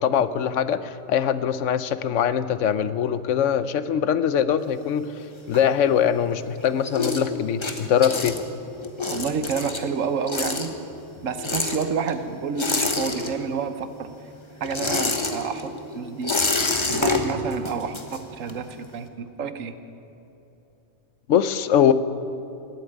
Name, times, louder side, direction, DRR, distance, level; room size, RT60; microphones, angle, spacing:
voice 1, 0.0-5.0 5.5-8.4 21.3-21.9, left 8 dB, 75° left, 13 dB, 1.0 m, -22 dB
sound 1, 4.6-6.2 6.5-13.8 14.0-18.7, left 3 dB, 25° left, 1.0 m, -28 dB
voice 2, 9.1-10.7 11.2-14.1 14.6-16.4 16.9-19.7, right 6 dB, 90° right, 10 dB, 1.3 m, -29 dB
18.0 x 8.7 x 9.2 m, 3.0 s
omnidirectional pair, 1.3 m